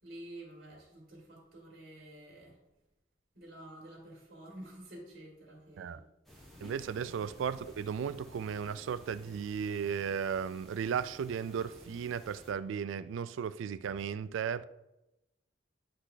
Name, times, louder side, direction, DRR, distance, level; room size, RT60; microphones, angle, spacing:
voice 1, 0.0-2.6 3.3-6.1 7.0-7.1, right 1 dB, 55° right, 2.3 m, -50 dB
sound 1, 6.2-12.5, equal, ahead, 1.2 m, -54 dB
voice 2, 6.6-14.7, right 7 dB, 85° right, 0.3 m, -35 dB
9.9 x 3.3 x 3.9 m
head